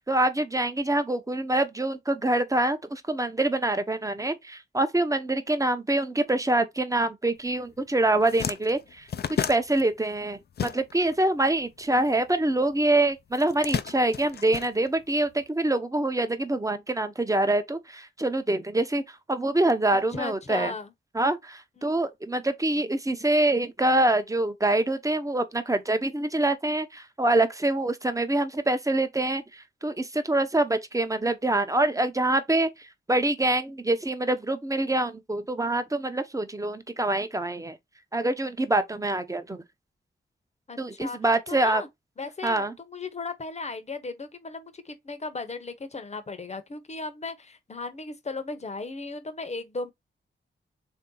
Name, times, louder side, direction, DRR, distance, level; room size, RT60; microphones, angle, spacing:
voice 1, 0.1-20.7 21.1-37.8 38.1-39.6 40.8-41.8 42.4-42.8, right 2 dB, 15° right, 0.7 m, -25 dB
sound 1, 7.6-7.8 8.1-11.2 11.5-12.7 13.3-15.3, left 8 dB, 55° left, 0.4 m, -33 dB
voice 2, 19.9-20.9 21.8-21.9 40.7-41.2 41.5-41.9 42.2-49.9, left 3 dB, 35° left, 0.8 m, -36 dB
3.3 x 2.8 x 3.8 m
cardioid pair, 60°, 20 cm